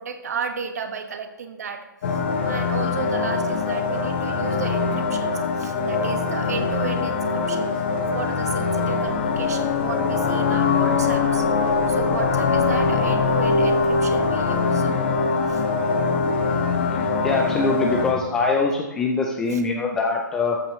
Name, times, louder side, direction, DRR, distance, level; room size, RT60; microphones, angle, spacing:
voice 1, 0.0-7.8 8.1-11.5 11.9-14.9 15.5-15.6 16.0-16.1 19.5-19.6, right 6 dB, 50° right, 7 dB, 1.3 m, -33 dB
sound 1, 2.0-18.1, left 4 dB, 35° left, 1.2 m, -22 dB
voice 2, 17.2-20.6, left 3 dB, 5° left, 1 dB, 0.3 m, -23 dB
14.0 x 8.5 x 3.1 m, 1.1 s
hypercardioid pair, 170°, 11 cm